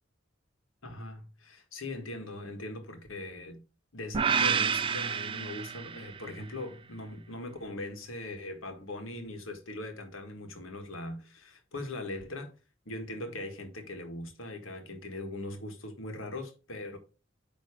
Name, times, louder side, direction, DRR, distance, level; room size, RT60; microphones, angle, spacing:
voice 1, 0.8-3.6 3.9-12.5 12.8-17.0, left 2 dB, 90° left, 1.7 m, -40 dB
sound 1, 4.1-6.4, right 6 dB, 25° right, 0.4 m, -29 dB
9.3 x 3.2 x 4.9 m
head